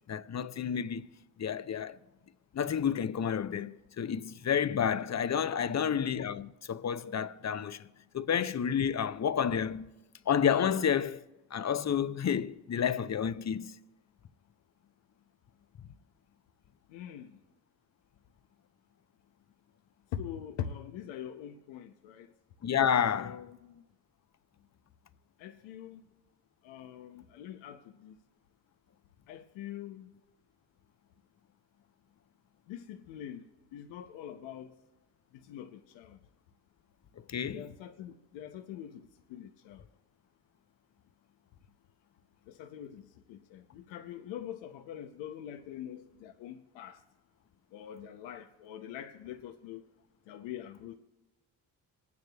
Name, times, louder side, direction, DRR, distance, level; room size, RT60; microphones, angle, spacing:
voice 1, 0.1-1.1 1.4-2.0 2.5-7.9 8.1-9.9 10.3-11.2 11.5-13.8 22.6-23.4 37.3-37.7, left 8 dB, 40° left, 0.7 m, -30 dB
voice 2, 5.5-5.9 16.9-17.4 20.1-22.3 23.0-23.8 25.4-26.0 26.6-28.2 29.3-30.1 32.7-34.7 35.3-36.2 37.5-39.9 42.5-47.0 47.7-49.8 50.3-50.9, left 10 dB, 80° left, 0.7 m, -44 dB
27.0 x 9.5 x 2.3 m
hypercardioid pair, 45°, 45 cm